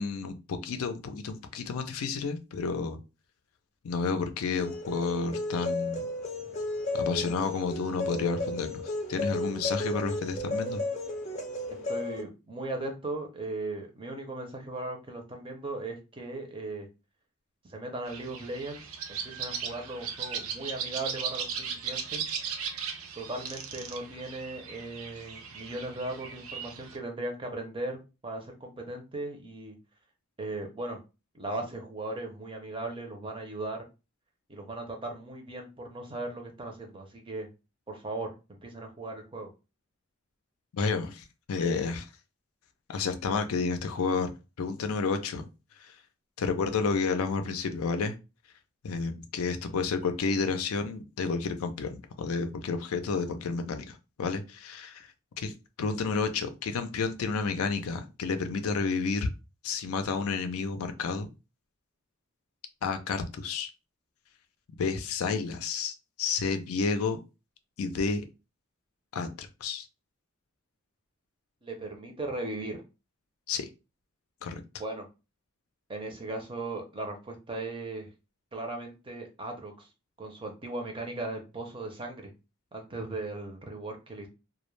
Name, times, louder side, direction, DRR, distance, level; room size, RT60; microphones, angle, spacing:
voice 1, 0.0-3.0 3.8-6.0 6.9-10.8 40.7-42.1 42.9-45.5 45.8-46.0 46.4-48.2 48.8-55.1 55.4-55.5 55.8-59.3 59.6-61.3 62.8-63.7 64.8-67.2 67.8-68.2 69.1-69.9 73.5-73.7 74.4-74.6, left 4 dB, 85° left, 0.4 m, -31 dB
sound 1, 4.6-12.2, left 2 dB, 30° left, 0.5 m, -33 dB
voice 2, 11.7-16.9 17.6-18.8 19.1-22.2 23.2-29.8 30.4-31.0 31.3-33.8 34.5-37.5 37.9-39.5 71.6-72.8 74.8-75.1 75.9-78.1 78.5-79.9 80.2-82.3 82.7-84.3, right 2 dB, 25° right, 0.5 m, -37 dB
sound 2, 18.1-27.0, right 6 dB, 85° right, 0.5 m, -37 dB
2.2 x 2.0 x 3.0 m
head